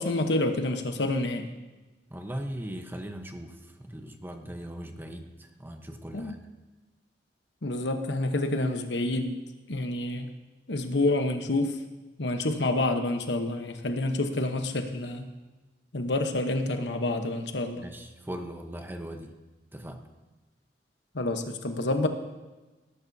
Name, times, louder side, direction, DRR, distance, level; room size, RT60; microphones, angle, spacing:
voice 1, 0.0-1.5 6.1-6.3 7.6-9.4 9.7-10.3 10.7-11.8 12.2-15.3 15.9-17.9 21.1-22.1, left 2 dB, 80° left, 6 dB, 1.1 m, -28 dB
voice 2, 2.1-6.4 17.7-19.3 19.7-20.1, equal, 10° right, 5 dB, 1.0 m, -39 dB
19.0 x 12.0 x 2.8 m, 1.2 s
head